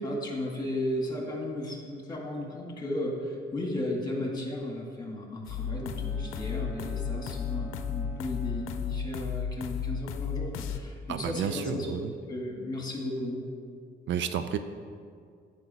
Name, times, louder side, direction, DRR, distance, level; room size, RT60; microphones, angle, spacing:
voice 1, 0.0-11.9 12.3-13.4, left 1 dB, 20° left, 0 dB, 2.0 m, -34 dB
sound 1, 5.4-10.8, left 7 dB, 85° left, 0.5 m, -34 dB
Bowed string instrument, 5.6-9.3, left 2 dB, 5° right, 1.1 m, -46 dB
voice 2, 11.1-12.1 14.1-14.6, right 8 dB, 70° right, 10 dB, 0.5 m, -31 dB
8.4 x 5.0 x 6.9 m, 2.1 s
cardioid pair, 90°, 20 cm